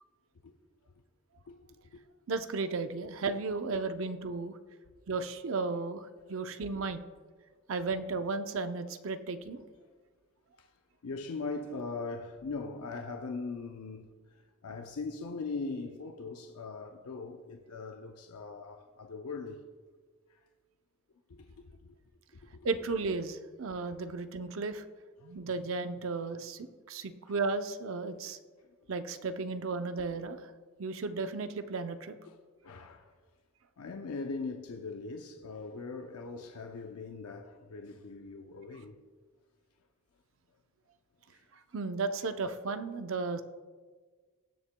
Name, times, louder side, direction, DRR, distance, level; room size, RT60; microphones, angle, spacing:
voice 1, 2.3-4.6 5.1-7.0 7.7-9.6 22.6-24.8 25.2-28.4 28.9-30.5 30.8-32.2 41.7-43.4, right 3 dB, 65° right, 0.6 m, -34 dB
voice 2, 11.0-19.6 20.3-20.4 21.3-22.0 22.3-22.6 32.3-32.4 32.6-33.1 33.8-39.0 41.3-41.4, left 3 dB, 85° left, 0.6 m, -40 dB
19.0 x 7.2 x 2.2 m
head